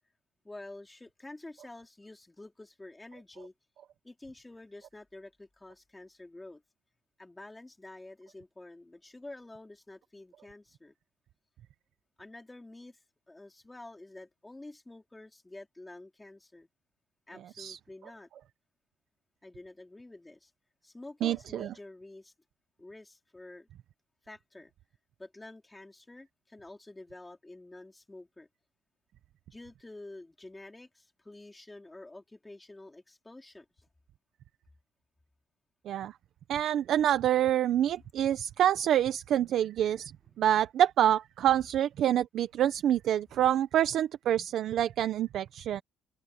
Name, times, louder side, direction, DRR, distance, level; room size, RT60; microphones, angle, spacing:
voice 1, 0.4-3.5 4.0-6.6 7.2-10.9 12.2-13.0 13.3-16.7 17.3-18.3 19.4-20.5 20.8-22.3 22.8-23.7 24.2-24.7 25.2-28.5 29.5-33.7, left 2 dB, 10° left, 4.4 m, -49 dB
voice 2, 21.2-21.7 35.8-36.1 36.5-40.1 40.4-45.8, right 11 dB, 65° right, 1.0 m, -27 dB
open air
cardioid pair, 125°, 0 cm